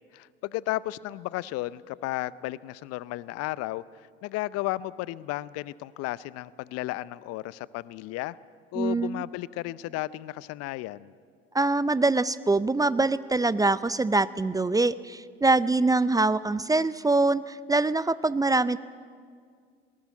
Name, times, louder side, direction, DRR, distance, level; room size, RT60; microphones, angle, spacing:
voice 1, 0.1-3.8 4.2-8.4 8.7-11.1, left 17 dB, 55° left, 19 dB, 0.6 m, -33 dB
voice 2, 8.7-9.2 11.5-18.8, right 3 dB, 10° right, 17 dB, 0.5 m, -24 dB
20.0 x 18.5 x 9.3 m, 2.1 s
hypercardioid pair, 60°, 30 cm